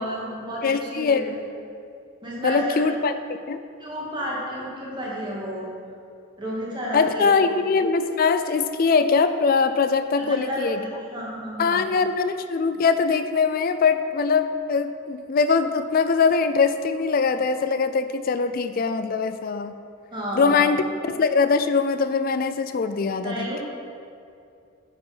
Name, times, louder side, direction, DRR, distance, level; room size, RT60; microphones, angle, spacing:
voice 1, 0.0-1.4 2.2-2.8 3.8-5.7 6.4-7.3 10.2-11.9 20.1-20.7 23.2-23.6, equal, 25° right, -6 dB, 2.1 m, -31 dB
voice 2, 0.6-1.3 2.4-3.6 6.9-10.8 11.6-19.8 20.3-23.6, left 5 dB, 45° left, 10 dB, 0.4 m, -22 dB
9.4 x 5.0 x 5.6 m, 2.4 s
head